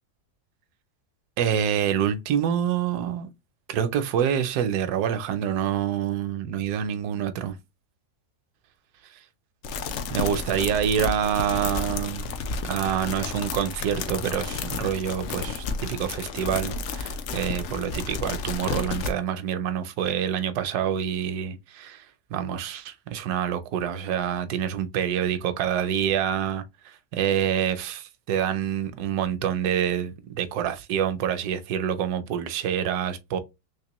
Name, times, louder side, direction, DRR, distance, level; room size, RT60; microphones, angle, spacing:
voice 1, 1.4-3.3 3.7-7.6 10.1-12.3 12.7-22.1 22.3-33.4, right 9 dB, 75° right, 1.1 m, -27 dB
sound 1, 9.6-19.1, left 4 dB, 65° left, 0.7 m, -32 dB
3.6 x 3.2 x 2.9 m
omnidirectional pair, 1.7 m